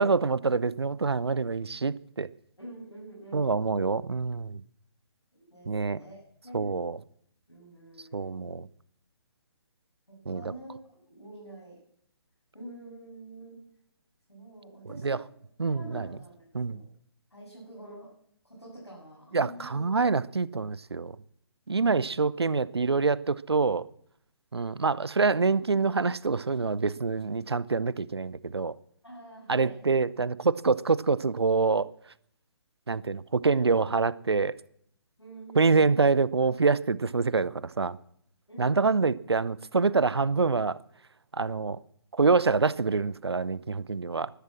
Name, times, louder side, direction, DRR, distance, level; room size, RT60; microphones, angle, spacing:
voice 1, 0.0-2.3 3.3-4.6 5.7-6.0 6.5-7.0 8.1-8.7 10.3-10.5 15.0-15.2 15.6-16.1 16.5-16.8 19.3-21.1 21.7-23.9 24.5-28.8 29.5-31.9 32.9-34.6 35.5-38.0 38.6-40.8 41.3-41.8 42.1-44.3, right 4 dB, 75° right, 0.6 m, -26 dB
voice 2, 2.6-3.7 5.3-6.7 7.5-8.5 10.1-10.8 11.1-11.8 12.5-13.6 14.3-15.2 15.7-16.9 17.3-18.1 18.4-19.9 29.0-29.8 35.2-35.9 38.5-39.1, right 1 dB, 85° left, 7.1 m, -47 dB
13.5 x 12.0 x 7.5 m
figure-of-eight pair, 140°, 14 cm